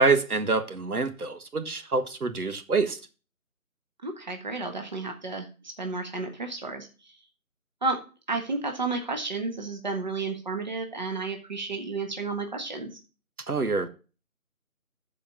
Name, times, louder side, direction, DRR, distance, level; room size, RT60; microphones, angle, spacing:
voice 1, 0.0-3.0 13.5-13.9, right 3 dB, 90° right, 1.6 m, -26 dB
voice 2, 4.0-7.2 7.8-8.0 8.3-12.9, right 3 dB, 30° right, 1.4 m, -32 dB
12.5 x 4.9 x 5.7 m
figure-of-eight pair, 170°, 43 cm